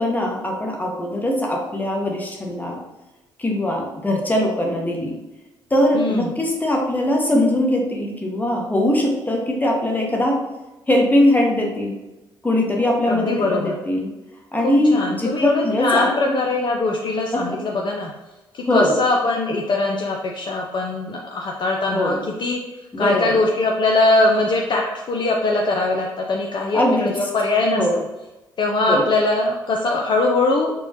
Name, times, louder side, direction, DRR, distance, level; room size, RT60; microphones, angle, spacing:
voice 1, 0.0-2.8 3.4-5.2 5.7-10.4 10.9-12.0 12.4-14.1 14.5-16.3 17.3-17.6 18.7-19.0 21.9-22.2 22.9-23.4 26.7-27.1 27.7-27.9 28.9-29.0, left 1 dB, 15° left, 0 dB, 1.0 m, -21 dB
voice 2, 5.9-6.3 13.1-13.8 14.6-18.1 18.5-22.6 23.0-28.0 28.6-30.7, left 2 dB, 45° left, 0 dB, 0.5 m, -21 dB
4.4 x 2.2 x 2.8 m, 1.0 s
hypercardioid pair, 45°, 11 cm